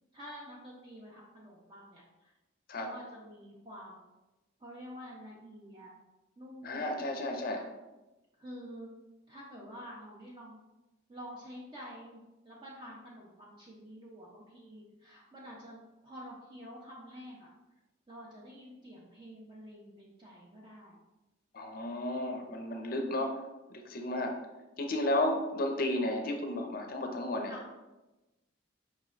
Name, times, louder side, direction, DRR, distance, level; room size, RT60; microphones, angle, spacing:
voice 1, 0.1-2.3 2.7-4.0 4.6-5.9 6.4-6.9 7.5-7.7 8.4-8.9 9.3-10.6 11.1-17.5 18.1-21.0 27.5-27.7, equal, 25° right, -4 dB, 0.5 m, -48 dB
voice 2, 6.6-7.7 21.5-23.4 23.7-24.4 24.8-27.7, left 1 dB, 50° left, 3 dB, 0.5 m, -33 dB
5.0 x 3.1 x 2.4 m, 1.0 s
head